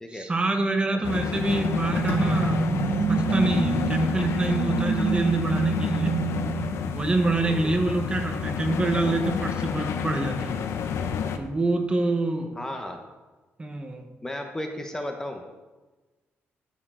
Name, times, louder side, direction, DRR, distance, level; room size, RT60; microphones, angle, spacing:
voice 1, 0.1-6.2 6.9-10.6 11.3-12.5 13.6-14.1, right 2 dB, 20° right, 4 dB, 1.1 m, -26 dB
sound 1, 1.0-11.4, left 7 dB, 75° left, 0.8 m, -30 dB
sound 2, 1.0-7.5, right 5 dB, 40° right, 0.7 m, -28 dB
Bowed string instrument, 2.1-5.1, left 1 dB, 45° left, 1.6 m, -42 dB
voice 2, 7.4-7.7 12.6-13.0 14.2-15.4, left 1 dB, 10° left, 4 dB, 0.9 m, -34 dB
13.0 x 6.9 x 3.9 m, 1.2 s
cardioid pair, 125°, 5 cm